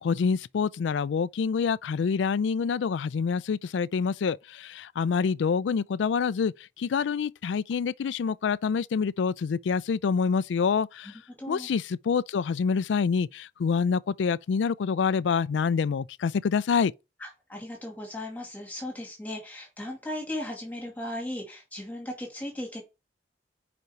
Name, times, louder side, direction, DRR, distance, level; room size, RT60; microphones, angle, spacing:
voice 1, 0.0-11.1 11.5-16.9, left 6 dB, 85° left, 0.4 m, -26 dB
voice 2, 11.0-11.7 17.2-22.8, left 1 dB, 10° left, 2.3 m, -37 dB
5.5 x 5.1 x 4.5 m
head